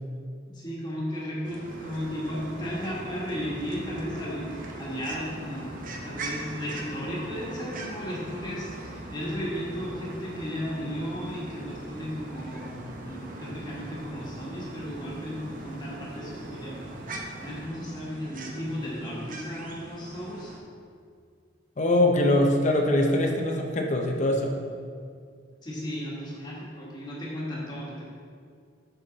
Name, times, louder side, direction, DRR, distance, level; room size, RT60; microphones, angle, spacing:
voice 1, 0.5-20.5 25.6-28.0, equal, 20° left, -6 dB, 1.5 m, -35 dB
sound 1, 1.4-20.6, right 2 dB, 45° right, 0.7 m, -42 dB
sound 2, 1.6-17.7, right 1 dB, 70° right, 1.1 m, -44 dB
voice 2, 21.8-24.5, left 1 dB, 40° left, 2 dB, 0.6 m, -23 dB
6.8 x 5.7 x 3.9 m, 2.2 s
head